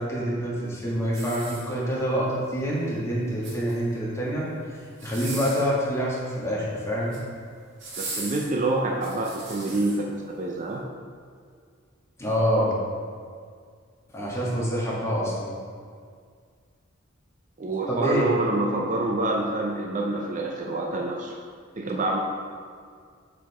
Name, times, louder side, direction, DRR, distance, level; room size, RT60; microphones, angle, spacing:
voice 1, 0.0-7.2 12.2-12.7 14.1-15.5 17.9-18.3, equal, 15° left, -7 dB, 1.7 m, -26 dB
sound 1, 1.1-2.1 3.2-4.0 4.9-5.8 6.8-7.3 7.8-10.0 10.6-10.7, right 2 dB, 65° right, 1.8 m, -38 dB
voice 2, 8.0-10.8 17.6-21.4 21.8-22.2, right 2 dB, 40° right, 0 dB, 0.5 m, -27 dB
6.4 x 5.0 x 4.9 m, 2.1 s
head